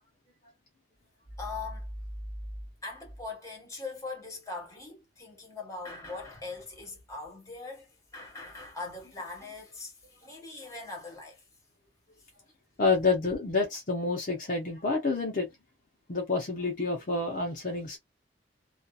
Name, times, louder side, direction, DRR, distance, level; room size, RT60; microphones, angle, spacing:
voice 1, 1.4-1.9 2.3-2.4 2.8-11.5 12.2-12.3, left 3 dB, 20° left, 1.3 m, -41 dB
voice 2, 12.8-15.5 16.1-18.0, left 3 dB, 50° left, 0.7 m, -28 dB
2.7 x 2.4 x 2.3 m
head